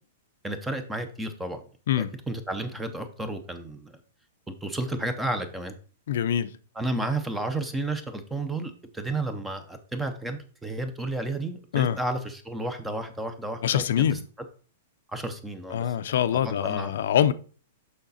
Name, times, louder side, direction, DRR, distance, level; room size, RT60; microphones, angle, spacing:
voice 1, 0.4-1.6 2.0-4.0 4.5-5.7 6.8-14.1 15.1-15.9 16.3-16.9, right 2 dB, 5° right, 0.6 m, -32 dB
voice 2, 6.1-6.6 11.7-12.0 13.6-14.2 15.7-17.3, left 9 dB, 60° left, 0.5 m, -24 dB
6.4 x 5.7 x 4.1 m
supercardioid pair, 170°, 0 cm